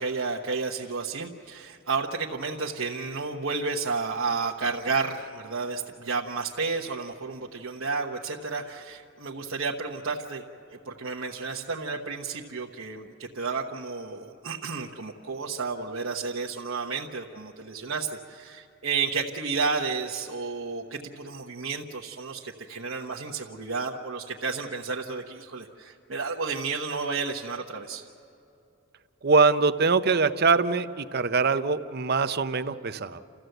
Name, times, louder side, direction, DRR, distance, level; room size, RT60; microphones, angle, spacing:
voice 1, 0.0-10.4 10.8-28.0, right 4 dB, 70° right, -2 dB, 1.1 m, -31 dB
voice 2, 29.2-33.2, right 4 dB, 50° right, 10 dB, 0.7 m, -23 dB
30.0 x 14.0 x 7.9 m, 2.9 s
head